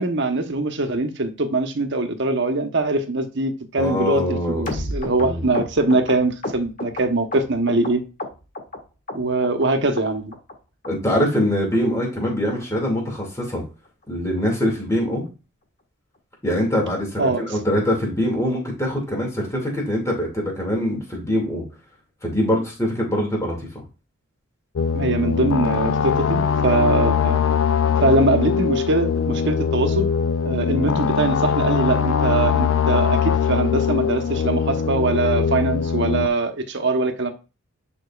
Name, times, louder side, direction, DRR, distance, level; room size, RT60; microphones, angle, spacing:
voice 1, 0.0-8.0 9.1-10.3 17.2-17.6 24.9-27.4 28.0-30.1 30.4-37.3, right 2 dB, 55° right, 1.0 m, -22 dB
voice 2, 3.8-5.5 10.8-13.6 14.1-15.2 16.4-21.6 22.2-23.7, equal, 15° left, 2.3 m, -23 dB
sound 1, 4.7-7.9 8.2-8.8 9.1-9.7 10.0-10.1 10.3-10.5 10.8-10.9 11.2-11.4 11.7-11.8 12.1-12.3 12.6-12.7 13.0-13.2 13.5-13.6 13.9-14.0 14.4-14.5, left 1 dB, 35° left, 1.6 m, -32 dB
sound 2, 24.8-36.3, left 6 dB, 70° left, 0.4 m, -21 dB
9.9 x 5.3 x 2.4 m
head